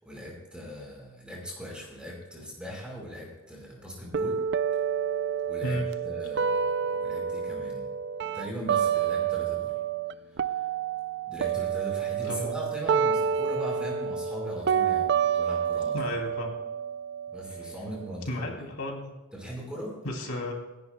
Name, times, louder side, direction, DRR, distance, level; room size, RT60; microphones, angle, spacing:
voice 1, 0.0-4.4 5.5-5.8 6.0-7.9 8.3-9.8 10.3-10.6 11.3-16.2 17.3-18.7 19.3-19.9, equal, 5° right, -3 dB, 4.5 m, -40 dB
sound 1, 4.1-10.1 10.4-18.2, right 7 dB, 50° right, 0.4 m, -29 dB
voice 2, 12.3-12.6 15.9-16.5 18.3-19.1 20.0-20.5, left 1 dB, 90° left, 1 dB, 2.7 m, -33 dB
28.0 x 10.5 x 2.2 m, 1.0 s
head